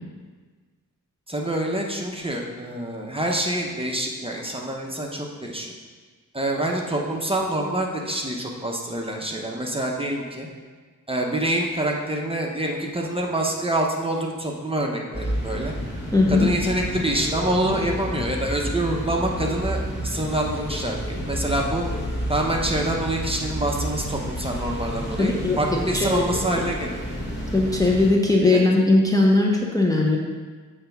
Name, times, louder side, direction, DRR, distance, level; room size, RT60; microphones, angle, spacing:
voice 1, 1.3-5.7 6.3-10.5 11.1-15.7 16.3-21.8 22.3-27.0 28.5-28.6, right 1 dB, 15° right, -1 dB, 0.9 m, -26 dB
sound 1, 15.1-28.1, equal, 30° left, 1.9 m, -30 dB
voice 2, 16.1-16.5 25.2-26.2 27.5-30.2, left 2 dB, 10° left, -2 dB, 0.7 m, -19 dB
7.4 x 3.4 x 5.9 m, 1.4 s
wide cardioid pair, 80°, 34 cm